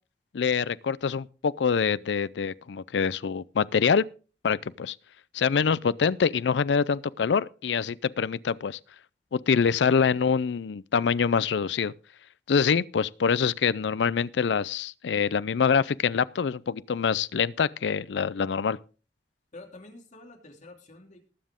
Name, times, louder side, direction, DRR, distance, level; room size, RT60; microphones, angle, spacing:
voice 1, 0.3-4.0 4.4-5.0 5.3-8.8 9.3-11.9 12.5-18.8, left 6 dB, 75° left, 0.4 m, -25 dB
voice 2, 19.5-21.3, left 2 dB, 45° left, 2.7 m, -48 dB
19.5 x 7.5 x 3.6 m
head